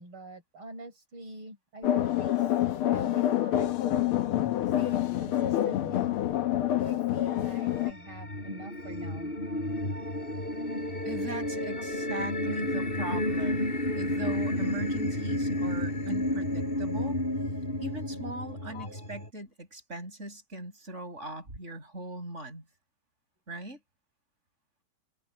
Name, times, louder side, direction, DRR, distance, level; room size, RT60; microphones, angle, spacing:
voice 1, 0.0-2.4 2.9-4.2 4.8-6.2 6.9-9.3 11.8-11.9 18.7-19.0, right 2 dB, 75° right, 6.9 m, -46 dB
sound 1, 1.8-7.9, left 12 dB, 80° left, 1.9 m, -27 dB
sound 2, 7.3-19.3, left 1 dB, 25° left, 6.9 m, -31 dB
voice 2, 11.0-13.7 14.0-17.2 17.8-22.6 23.5-23.8, right 1 dB, 30° right, 7.6 m, -40 dB
omnidirectional pair, 2.4 m